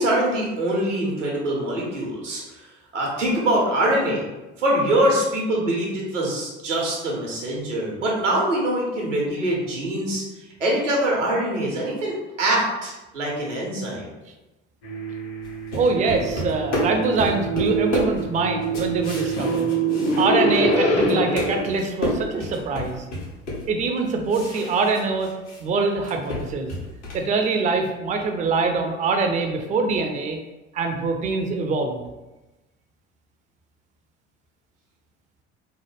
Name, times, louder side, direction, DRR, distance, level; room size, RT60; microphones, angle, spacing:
voice 1, 0.0-4.3 4.6-14.1, right 1 dB, 85° right, -2 dB, 0.8 m, -24 dB
sound 1, 14.8-21.7, right 2 dB, 45° left, 0.8 m, -25 dB
sound 2, 15.4-20.7 21.0-25.6 25.9-27.3, left 1 dB, 75° left, 1.1 m, -31 dB
voice 2, 15.7-19.7 20.2-23.0 23.7-25.3 25.6-26.7 27.1-30.4 30.7-32.0, right 4 dB, 20° right, 4 dB, 0.4 m, -24 dB
3.2 x 2.1 x 3.1 m, 1.1 s
figure-of-eight pair, 60°, 36 cm